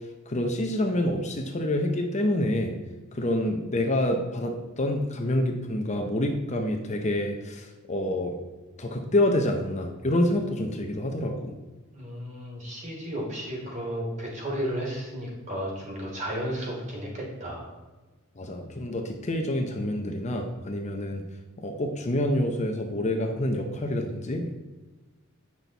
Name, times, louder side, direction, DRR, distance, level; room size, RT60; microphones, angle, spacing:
voice 1, 0.3-2.7 3.1-8.4 8.8-11.5 18.4-21.2 21.6-24.5, left 1 dB, 35° left, 3 dB, 0.8 m, -27 dB
voice 2, 11.9-17.7, equal, 35° right, -3 dB, 2.8 m, -33 dB
8.8 x 6.0 x 4.0 m, 1.2 s
head